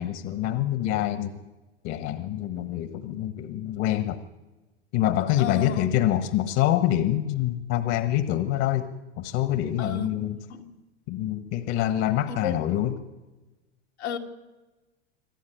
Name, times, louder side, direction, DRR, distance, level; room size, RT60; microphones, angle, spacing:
voice 1, 0.0-1.4 1.8-4.2 4.9-8.9 9.2-10.4 11.1-12.9, left 12 dB, 55° left, 10 dB, 1.5 m, -26 dB
voice 2, 5.4-5.9 9.8-10.2 10.5-10.6 12.3-12.6 14.0-14.2, left 6 dB, 90° left, 0 dB, 2.7 m, -32 dB
26.0 x 13.0 x 9.5 m, 1.2 s
hypercardioid pair, 100°, 33 cm